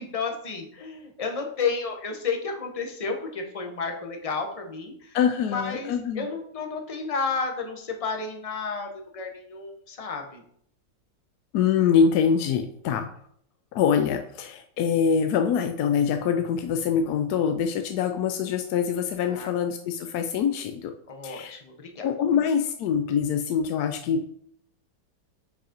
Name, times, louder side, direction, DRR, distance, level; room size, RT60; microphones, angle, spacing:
voice 1, 0.0-5.2 5.4-10.4 19.2-19.5 21.1-22.4, left 4 dB, 40° left, 3 dB, 0.5 m, -32 dB
voice 2, 5.1-6.3 11.5-13.1 13.7-20.9 21.2-21.6 22.0-24.3, left 7 dB, 70° left, 5 dB, 1.0 m, -24 dB
5.1 x 4.8 x 5.0 m, 0.66 s
omnidirectional pair, 1.9 m